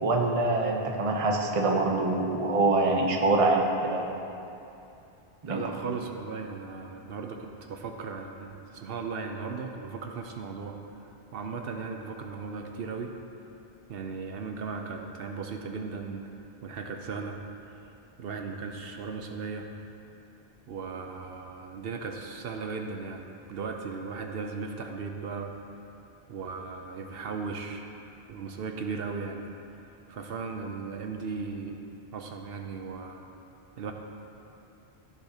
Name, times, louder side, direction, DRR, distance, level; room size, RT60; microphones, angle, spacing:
voice 1, 0.0-4.1 5.4-5.6, right 2 dB, 35° right, 1 dB, 0.8 m, -25 dB
voice 2, 5.4-13.1 13.9-16.3 16.6-17.4 17.7-17.8 18.2-19.7 20.7-25.5 26.3-27.9 28.3-29.5 29.8-31.8 32.1-33.3 33.8-33.9, right 4 dB, 70° right, 4 dB, 0.8 m, -37 dB
15.0 x 6.4 x 2.8 m, 2.8 s
omnidirectional pair, 1.1 m